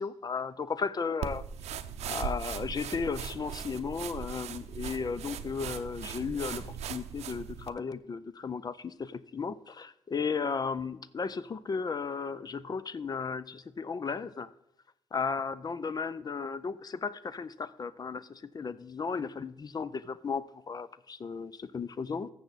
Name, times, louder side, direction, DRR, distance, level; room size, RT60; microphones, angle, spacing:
voice 1, 0.0-1.4 2.1-14.5 15.1-22.3, left 5 dB, 35° left, 0.5 m, -35 dB
sound 1, 1.2-7.7, right 8 dB, 90° right, 0.6 m, -39 dB
14.5 x 6.9 x 4.1 m
cardioid pair, 80°, 11 cm